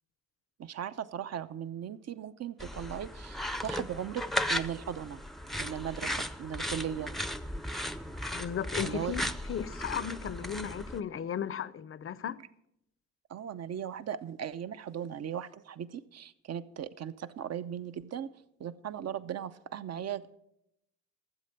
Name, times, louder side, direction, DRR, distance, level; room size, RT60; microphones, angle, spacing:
voice 1, 0.6-4.2 4.5-5.2 5.6-7.1 8.8-9.1 13.3-18.3 18.6-20.4, right 9 dB, 50° right, 0.7 m, -38 dB
sound 1, 2.6-11.0, equal, ahead, 0.6 m, -36 dB
voice 2, 8.3-12.4, left 8 dB, 40° left, 0.6 m, -36 dB
13.0 x 7.7 x 6.8 m
supercardioid pair, 65°, 32 cm